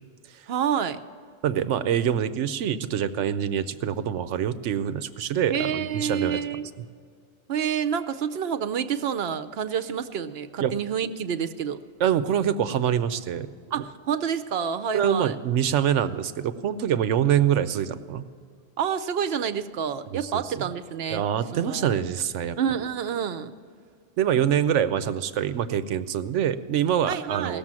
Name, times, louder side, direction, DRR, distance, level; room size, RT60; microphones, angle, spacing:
voice 1, 0.5-1.0 5.5-6.7 7.5-11.8 13.7-15.4 18.8-21.3 21.5-22.0 22.6-23.5 27.1-27.6, right 8 dB, 65° right, 11 dB, 0.8 m, -28 dB
voice 2, 1.4-6.4 10.6-10.7 12.0-13.5 13.8-13.9 14.9-18.2 20.1-20.6 21.1-22.6 24.2-27.6, right 9 dB, 90° right, 12 dB, 1.0 m, -25 dB
17.0 x 6.9 x 7.4 m, 2.2 s
omnidirectional pair, 1.2 m